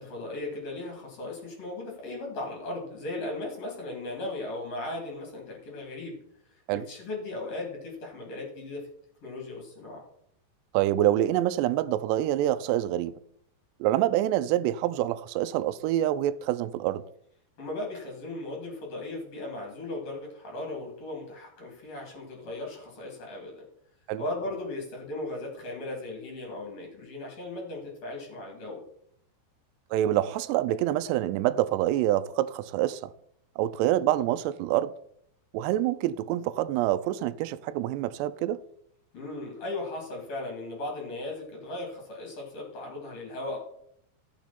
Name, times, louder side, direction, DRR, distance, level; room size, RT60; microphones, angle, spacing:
voice 1, 0.0-6.2 6.5-8.9 9.2-10.1 17.6-23.5 24.2-28.8 39.1-43.6, left 2 dB, 40° left, 3.2 m, -37 dB
voice 2, 10.7-13.1 13.8-17.0 24.1-24.2 29.9-33.1 33.6-34.9 35.5-38.6, right 13 dB, 80° right, 2.6 m, -26 dB
15.0 x 6.3 x 4.2 m
omnidirectional pair, 5.1 m